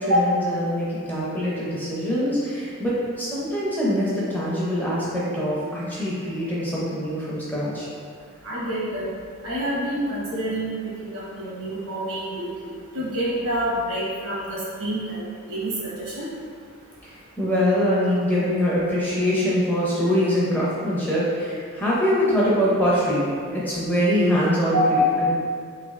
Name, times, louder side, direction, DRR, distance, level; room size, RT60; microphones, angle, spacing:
voice 1, 0.1-7.9 17.0-23.3 23.5-25.3, equal, 10° left, -8 dB, 0.5 m, -23 dB
voice 2, 8.4-9.1 9.4-10.7 11.0-16.3 24.7-25.3, equal, 85° right, -7 dB, 1.1 m, -26 dB
3.4 x 3.1 x 2.4 m, 2.2 s
head